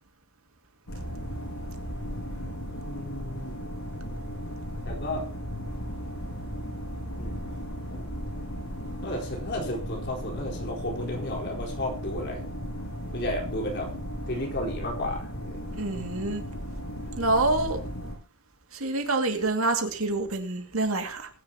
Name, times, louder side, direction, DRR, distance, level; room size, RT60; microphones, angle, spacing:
sound 1, 0.9-18.2, equal, 80° left, 6.4 m, -36 dB
voice 1, 2.8-3.7 4.8-5.2 7.2-7.4 7.9-8.0 9.0-12.4 13.1-13.9 14.3-15.6, left 1 dB, 50° left, 4.5 m, -33 dB
voice 2, 15.7-16.4 17.2-17.8 18.7-21.3, right 2 dB, 75° right, 2.4 m, -27 dB
21.0 x 10.0 x 3.0 m
head